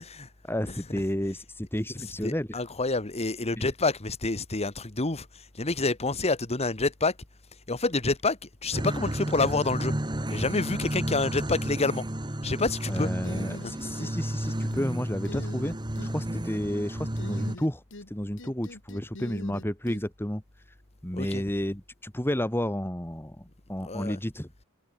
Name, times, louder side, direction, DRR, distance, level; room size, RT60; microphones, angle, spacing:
voice 1, 0.4-2.5 3.6-3.7 12.9-15.8 16.0-20.4 21.0-24.5, equal, 10° left, 2.6 m, -31 dB
voice 2, 2.2-5.3 5.6-7.1 7.7-9.9 10.3-12.0 12.4-13.1 13.5-13.7 21.1-21.4 23.8-24.2, left 3 dB, 30° left, 1.6 m, -28 dB
sound 1, 8.7-17.6, right 1 dB, 20° right, 1.5 m, -32 dB
sound 2, 13.2-14.1 14.4-14.9 15.2-16.1 17.2-18.1 18.4-20.0, left 1 dB, 60° left, 2.7 m, -42 dB
head